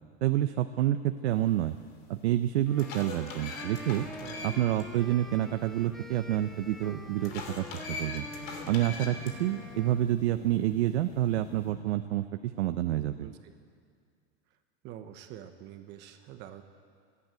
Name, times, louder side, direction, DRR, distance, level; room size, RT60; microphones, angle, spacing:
voice 1, 0.2-1.8 2.1-4.1 4.4-8.2 8.7-13.3, right 13 dB, 80° right, 8 dB, 0.9 m, -28 dB
sound 1, 1.8-1.9 2.5-4.8 5.2-5.3 7.2-9.3, left 4 dB, 35° left, 2.9 m, -41 dB
sound 2, 2.6-10.1, equal, ahead, 0.6 m, -47 dB
sound 3, 3.5-11.7, left 4 dB, 85° left, 6.4 m, -49 dB
voice 2, 13.2-13.5 14.8-16.6, right 10 dB, 30° right, 7 dB, 1.1 m, -46 dB
29.5 x 11.5 x 9.0 m, 2.2 s
supercardioid pair, 165°, 33 cm